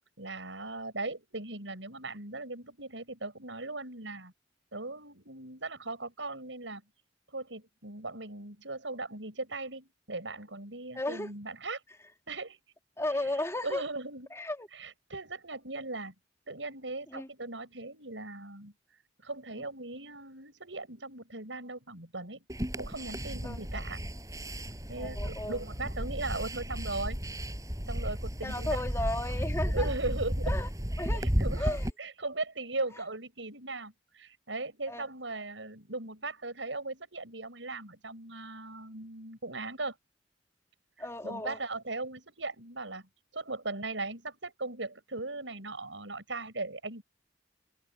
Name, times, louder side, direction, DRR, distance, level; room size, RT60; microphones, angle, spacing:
voice 1, 0.2-4.3 4.7-6.8 7.3-11.8 12.3-12.6 13.1-13.3 13.6-14.3 14.7-16.1 16.5-18.7 19.2-22.4 22.8-24.0 24.9-27.2 27.8-28.8 29.5-30.5 31.1-40.0 41.0-47.0, right 2 dB, 90° right, 6.3 m, -38 dB
voice 2, 10.9-11.3 13.0-13.8 14.3-14.7 17.1-17.3 23.4-23.6 25.0-25.6 28.4-29.9 30.5-30.7 31.0-31.2 31.6-31.8 34.9-35.0 41.0-41.6, left 1 dB, 15° left, 3.0 m, -34 dB
sound 1, 22.5-31.9, equal, 20° right, 6.9 m, -33 dB
head